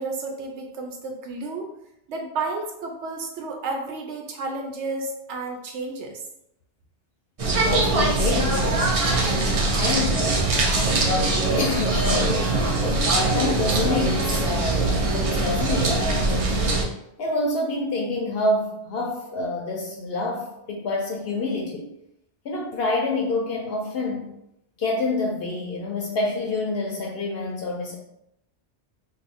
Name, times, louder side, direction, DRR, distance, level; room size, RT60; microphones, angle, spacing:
voice 1, 0.0-1.7 2.1-6.2, right 3 dB, 80° right, 2 dB, 0.9 m, -31 dB
sound 1, 7.4-16.8, right 2 dB, 45° right, 0.4 m, -22 dB
voice 2, 7.5-9.3 9.8-10.5 11.6-12.5 13.3-16.8 17.2-21.9 22.4-24.3 24.8-28.0, left 2 dB, 65° left, 0 dB, 0.7 m, -27 dB
2.5 x 2.4 x 4.1 m, 0.80 s
omnidirectional pair, 1.2 m